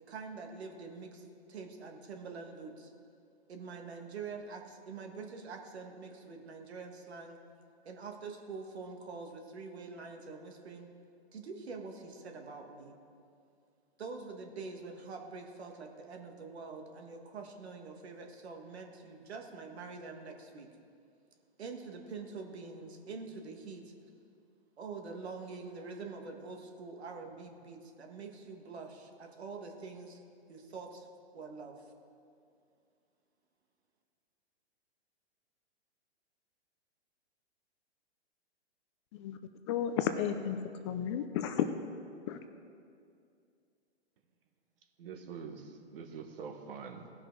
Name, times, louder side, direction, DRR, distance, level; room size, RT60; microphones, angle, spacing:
voice 1, 0.1-2.9 3.5-7.4 7.9-10.9 11.3-13.0 14.0-20.7 21.6-23.9 24.8-30.2 30.5-31.1 31.3-31.8, right 4 dB, 75° right, 3 dB, 1.7 m, -45 dB
voice 2, 39.7-41.7 42.3-42.4, left 9 dB, 25° left, 8 dB, 0.4 m, -33 dB
voice 3, 45.0-47.1, right 6 dB, 55° right, 5 dB, 1.4 m, -45 dB
17.5 x 6.1 x 4.7 m, 2.4 s
hypercardioid pair, 130°, 33 cm